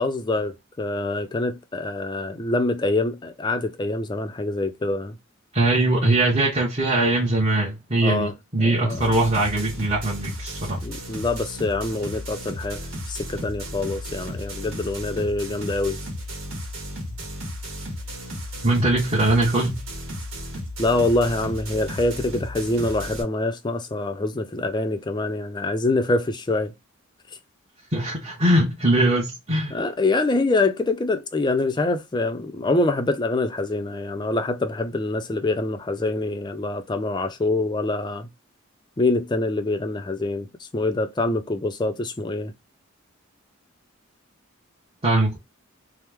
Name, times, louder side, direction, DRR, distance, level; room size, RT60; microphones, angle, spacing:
voice 1, 0.0-5.1 8.0-8.3 8.6-9.1 10.8-12.8 13.1-16.0 20.8-26.7 29.7-38.3 39.0-40.5 40.7-42.5, left 2 dB, 20° left, 0.4 m, -25 dB
voice 2, 5.5-10.8 18.6-19.8 27.9-29.8 45.0-45.4, right 2 dB, 25° right, 0.9 m, -21 dB
sound 1, 8.9-23.2, equal, 70° right, 1.1 m, -34 dB
3.0 x 2.0 x 3.3 m
head